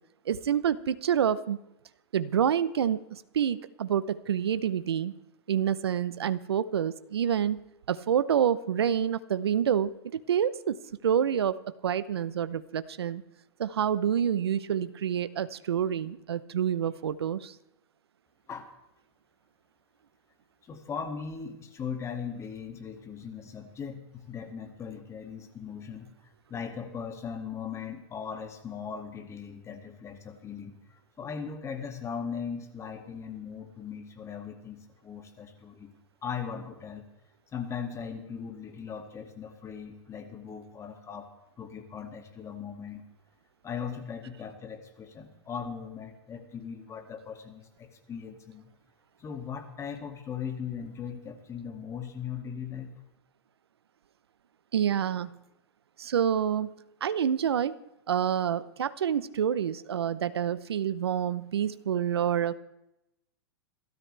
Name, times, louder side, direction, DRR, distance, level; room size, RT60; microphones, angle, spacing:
voice 1, 0.3-1.6 2.1-5.1 5.5-7.6 7.9-10.8 11.0-13.2 13.6-17.5 54.7-55.3 56.0-56.7 57.0-57.7 58.1-62.5, right 9 dB, 90° right, 15 dB, 0.8 m, -27 dB
voice 2, 20.6-35.9 36.2-37.1 37.5-41.3 41.6-43.1 43.6-48.7 49.2-52.9, left 7 dB, 20° left, 6 dB, 2.3 m, -39 dB
29.0 x 13.5 x 3.4 m, 0.87 s
hypercardioid pair, 125°, 13 cm